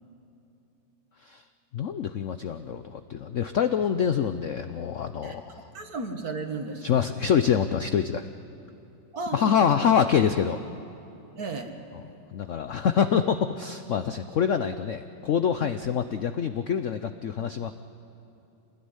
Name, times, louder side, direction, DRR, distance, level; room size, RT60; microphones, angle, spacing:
voice 1, 1.7-5.7 6.8-8.3 9.3-10.6 11.9-12.0 12.3-17.7, left 7 dB, 75° left, 9 dB, 0.7 m, -25 dB
voice 2, 5.7-6.8 9.1-9.7 11.4-11.7, right 3 dB, 50° right, 5 dB, 2.2 m, -33 dB
26.0 x 19.0 x 9.8 m, 2.9 s
omnidirectional pair, 2.1 m